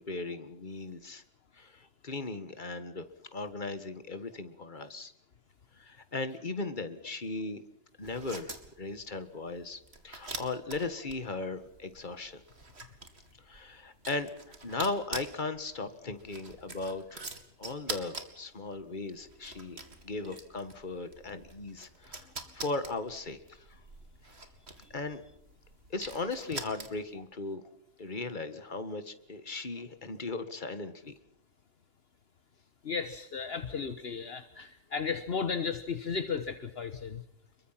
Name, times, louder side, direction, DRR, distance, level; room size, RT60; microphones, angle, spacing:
voice 1, 0.1-1.2 1.5-3.0 3.3-5.1 5.8-7.6 8.0-8.5 8.8-12.4 13.5-14.3 14.6-17.2 17.6-22.3 22.5-23.7 24.9-25.2 25.9-27.6 28.0-31.1, left 3 dB, 40° left, 10 dB, 1.9 m, -37 dB
sound 1, 8.0-27.2, right 3 dB, 65° right, 2.7 m, -46 dB
voice 2, 32.8-37.2, left 5 dB, 60° left, 10 dB, 1.4 m, -34 dB
27.0 x 23.0 x 5.9 m, 0.78 s
omnidirectional pair, 1.2 m